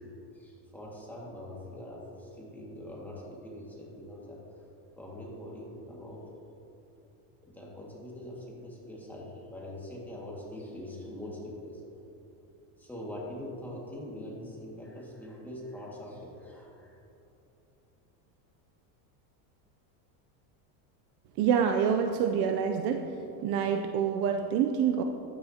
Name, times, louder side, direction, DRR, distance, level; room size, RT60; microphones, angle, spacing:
voice 1, 0.0-4.7 5.0-6.2 7.4-11.8 12.8-17.0, left 1 dB, 5° left, -4 dB, 1.9 m, -43 dB
voice 2, 21.4-23.1 23.4-25.0, right 7 dB, 50° right, 5 dB, 0.6 m, -26 dB
15.0 x 10.5 x 2.9 m, 2.9 s
cardioid pair, 150°, 49 cm